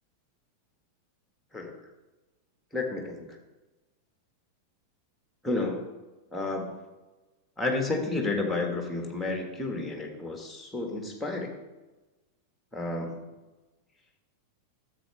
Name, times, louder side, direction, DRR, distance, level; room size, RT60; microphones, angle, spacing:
voice 1, 2.7-3.3 5.4-5.9 6.3-6.8 7.6-11.6 12.7-13.3, left 2 dB, 5° left, 2 dB, 1.7 m, -31 dB
12.5 x 7.8 x 3.5 m, 1.1 s
figure-of-eight pair, 90°, 0 cm